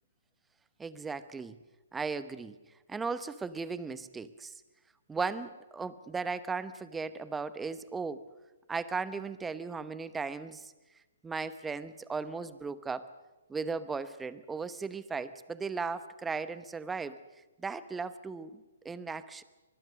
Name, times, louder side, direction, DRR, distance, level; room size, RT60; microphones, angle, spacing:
voice 1, 0.8-1.6 1.9-2.6 2.9-4.5 5.1-8.2 8.7-10.7 11.2-13.1 13.5-17.2 17.6-19.4, right 4 dB, 10° right, 14 dB, 1.0 m, -36 dB
24.5 x 20.5 x 6.5 m, 1.1 s
hypercardioid pair, 130°, 0 cm